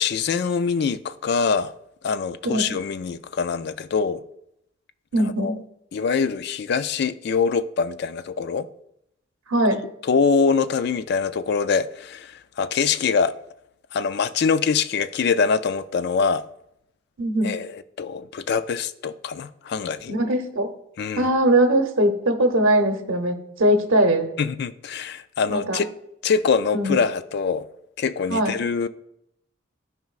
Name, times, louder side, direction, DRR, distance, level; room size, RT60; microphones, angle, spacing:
voice 1, 0.0-1.7 2.0-4.2 5.1-5.5 5.9-8.7 10.0-13.3 13.9-16.4 17.4-20.1 21.0-21.3 24.4-25.9 26.2-27.7 28.0-28.9, left 5 dB, 55° left, 0.3 m, -24 dB
voice 2, 5.1-5.6 9.5-9.8 17.2-17.5 20.1-20.7 21.2-24.3 25.5-25.8 26.7-27.0 28.3-28.6, right 1 dB, 80° right, 0.8 m, -21 dB
12.5 x 5.0 x 2.4 m
head